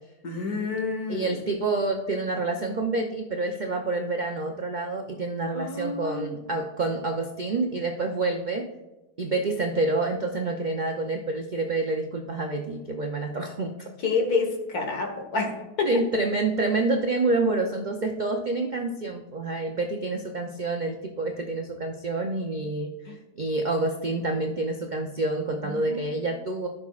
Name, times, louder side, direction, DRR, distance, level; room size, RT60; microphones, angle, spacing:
voice 1, 0.2-1.3 5.5-6.4 14.0-15.5 15.8-15.9 23.1-23.2 25.6-26.3, left 4 dB, 65° left, 2 dB, 1.9 m, -28 dB
voice 2, 1.1-8.7 9.2-13.9 15.8-22.9 23.4-26.7, right 2 dB, 60° right, 2 dB, 0.4 m, -28 dB
14.5 x 6.3 x 2.4 m, 1.1 s
omnidirectional pair, 1.7 m